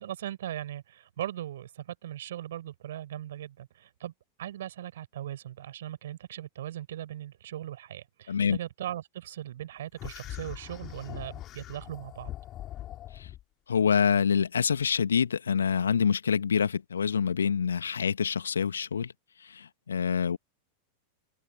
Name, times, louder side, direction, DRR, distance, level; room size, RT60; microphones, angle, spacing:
voice 1, 0.0-4.1 4.4-12.3, right 12 dB, 60° right, 5.0 m, -39 dB
voice 2, 8.3-8.6 13.2-13.3 13.7-19.1 19.4-20.4, left 7 dB, 70° left, 1.8 m, -26 dB
sound 1, 10.0-13.4, left 13 dB, 30° left, 4.1 m, -41 dB
open air
figure-of-eight pair, 90°, 0 cm